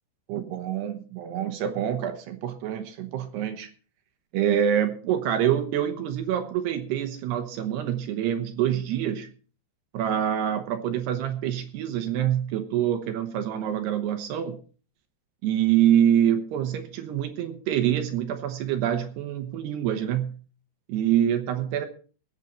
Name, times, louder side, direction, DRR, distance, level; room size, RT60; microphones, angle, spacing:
voice 1, 0.3-3.7 4.3-9.3 9.9-14.6 15.4-20.3 20.9-21.9, right 10 dB, 70° right, 8 dB, 2.9 m, -26 dB
21.5 x 8.0 x 4.3 m, 0.39 s
omnidirectional pair, 5.4 m